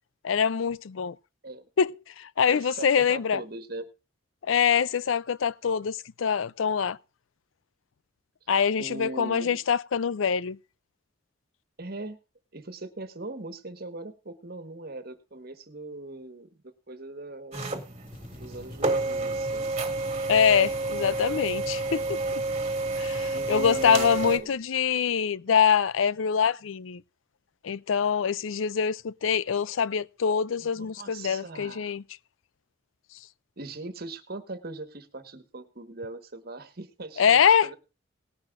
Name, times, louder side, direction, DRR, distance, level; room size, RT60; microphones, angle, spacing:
voice 1, 0.2-1.2 1.8-3.4 4.5-7.0 8.5-10.6 20.3-22.4 23.0-27.0 27.6-32.0 37.2-37.7, left 7 dB, 90° left, 0.5 m, -24 dB
voice 2, 2.5-3.9 8.8-9.6 11.8-12.2 12.5-17.7 18.3-19.7 23.3-24.6 30.6-31.9 33.6-37.8, right 2 dB, 55° right, 1.5 m, -40 dB
sound 1, 17.5-24.4, right 2 dB, 30° right, 1.8 m, -30 dB
sound 2, 18.0-24.6, left 1 dB, 25° left, 2.3 m, -46 dB
19.0 x 10.5 x 2.5 m
head